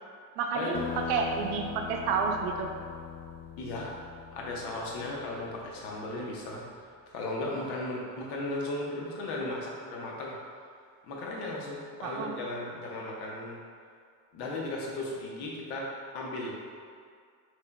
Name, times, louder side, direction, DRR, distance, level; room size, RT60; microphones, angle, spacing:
voice 1, 0.4-2.7 12.0-12.4, right 5 dB, 80° right, 3 dB, 0.7 m, -30 dB
sound 1, 0.7-5.9, left 6 dB, 40° left, 0.4 m, -41 dB
voice 2, 3.6-3.9 4.3-6.6 7.1-10.4 11.1-13.6 14.3-16.6, left 2 dB, 70° left, -3 dB, 1.1 m, -36 dB
6.9 x 3.2 x 2.2 m, 2.1 s
supercardioid pair, 80°, 42 cm